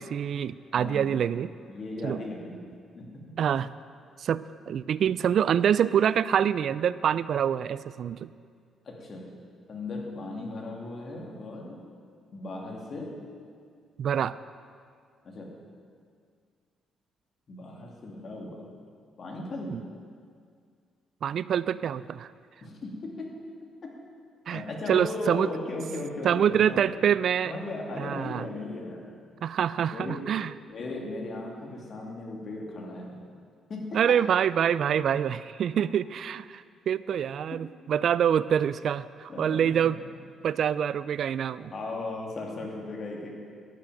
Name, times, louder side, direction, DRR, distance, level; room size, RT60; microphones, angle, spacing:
voice 1, 0.0-1.5 2.0-2.2 3.4-3.7 4.2-8.3 14.0-14.3 19.7-19.8 21.2-22.3 24.5-24.6 24.9-25.5 26.2-27.6 28.0-28.5 29.4-30.5 33.9-40.0 40.4-41.7, right 8 dB, 65° right, 17 dB, 0.3 m, -26 dB
voice 2, 0.7-1.1 1.7-3.4 8.8-9.4 9.7-11.8 12.3-13.2 15.2-15.6 17.5-18.7 19.2-19.9 22.6-23.9 24.5-26.9 27.4-29.1 29.9-30.3 30.7-33.2 33.7-34.2 39.3-40.0 41.6-43.4, left 2 dB, 50° left, 0 dB, 2.5 m, -37 dB
12.5 x 6.3 x 9.0 m, 2.1 s
cardioid pair, 90°, 0 cm